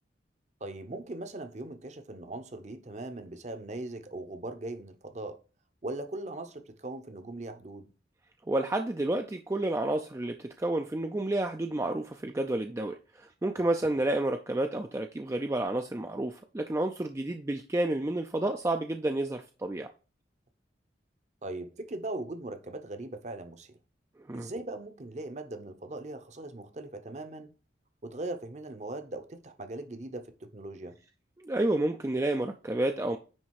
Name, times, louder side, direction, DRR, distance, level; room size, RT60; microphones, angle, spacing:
voice 1, 0.6-5.4 5.8-7.9 21.4-23.8 24.3-27.5 28.0-31.0, right 2 dB, 40° right, 0.8 m, -39 dB
voice 2, 8.5-19.9 24.3-24.5 31.4-33.2, right 1 dB, 15° right, 0.4 m, -30 dB
9.7 x 3.4 x 4.7 m
head